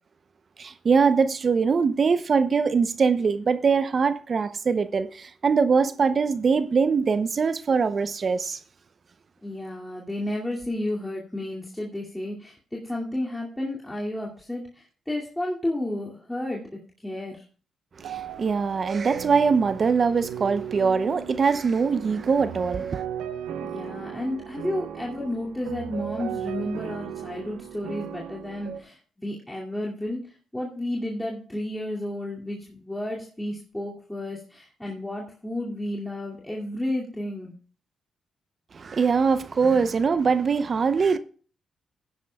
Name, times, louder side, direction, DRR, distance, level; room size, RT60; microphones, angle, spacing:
voice 1, 0.6-8.6 18.0-23.0 38.7-41.2, right 5 dB, 50° right, 0.7 m, -22 dB
voice 2, 9.4-16.7 17.0-17.4 23.6-37.5 39.6-40.2, left 1 dB, 10° left, 2.4 m, -32 dB
sound 1, 18.0-28.8, right 9 dB, 90° right, 1.0 m, -36 dB
16.5 x 10.0 x 2.3 m
supercardioid pair, 65°, 0 cm